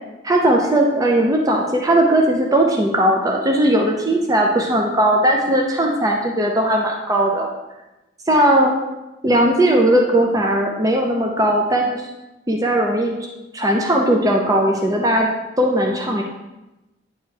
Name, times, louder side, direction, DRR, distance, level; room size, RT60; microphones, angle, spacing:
voice 1, 0.2-7.5 8.3-8.8 9.2-12.1 12.5-13.1 13.5-15.3 15.6-16.2, right 1 dB, 20° right, 0 dB, 0.6 m, -18 dB
9.3 x 3.2 x 4.7 m, 1.0 s
head